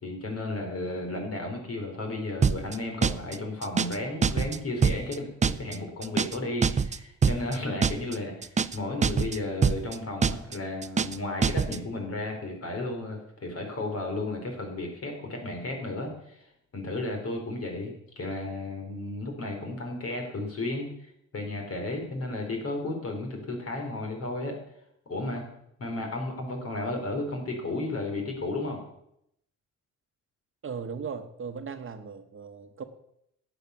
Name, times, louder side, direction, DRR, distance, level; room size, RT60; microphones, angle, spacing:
voice 1, 0.0-16.4 16.7-24.6 25.1-25.4 25.8-28.8, left 2 dB, 50° left, 3 dB, 4.2 m, -33 dB
sound 1, 2.4-2.8 3.0-3.4 3.6-4.0 4.2-4.6 4.8-5.2 5.4-5.8 6.0-6.4 6.6-7.0 7.2-7.6 7.8-8.2 8.4-8.8 9.0-9.4 9.6-10.0 10.2-10.6 10.8-11.2 11.4-11.8, right 6 dB, 25° right, 0.5 m, -24 dB
voice 2, 30.6-32.8, right 6 dB, 45° right, 8 dB, 1.1 m, -37 dB
12.0 x 8.3 x 7.1 m, 0.77 s
cardioid pair, 90°, 30 cm